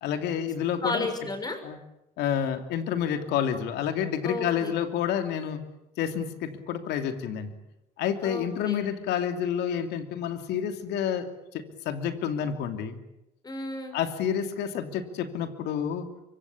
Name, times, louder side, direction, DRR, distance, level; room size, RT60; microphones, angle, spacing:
voice 1, 0.0-1.1 1.6-1.8 2.2-5.6 6.0-7.5 8.0-11.3 11.5-13.0 13.9-16.1, left 8 dB, 85° left, 7 dB, 2.9 m, -29 dB
voice 2, 0.8-1.6 4.2-4.7 8.2-8.9 13.4-14.0, left 2 dB, 25° left, 7 dB, 6.4 m, -33 dB
24.5 x 24.0 x 8.7 m, 0.90 s
cardioid pair, 110°, 17 cm